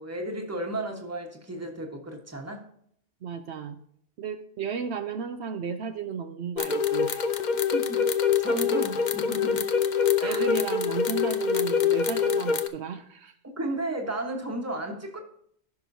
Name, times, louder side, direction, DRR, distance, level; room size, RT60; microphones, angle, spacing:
voice 1, 0.0-2.7 7.7-8.0 8.4-9.7 10.2-10.5 13.4-15.2, right 1 dB, 15° right, 2 dB, 1.2 m, -33 dB
voice 2, 3.2-3.8 4.2-7.2 10.2-13.3, right 6 dB, 70° right, 7 dB, 0.9 m, -34 dB
sound 1, 6.6-12.7, left 6 dB, 50° left, 0.7 m, -25 dB
15.5 x 6.0 x 2.7 m, 0.68 s
omnidirectional pair, 1.2 m